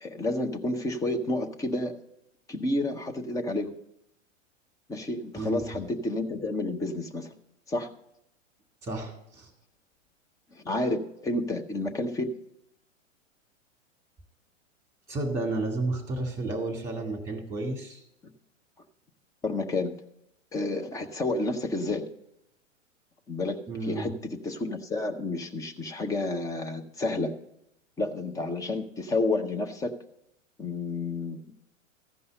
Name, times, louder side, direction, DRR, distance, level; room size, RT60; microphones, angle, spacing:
voice 1, 0.0-1.9 2.5-3.7 4.9-7.3 7.7-7.9 10.5-12.3 19.4-20.0 20.5-22.0 23.3-24.1 24.4-27.3 28.0-29.9 30.6-31.5, left 2 dB, 10° left, 5 dB, 0.5 m, -30 dB
voice 2, 8.8-9.5 15.1-18.0 23.7-24.1, right 2 dB, 10° right, 4 dB, 1.9 m, -32 dB
14.5 x 5.4 x 6.6 m, 0.81 s
figure-of-eight pair, 105°, 38 cm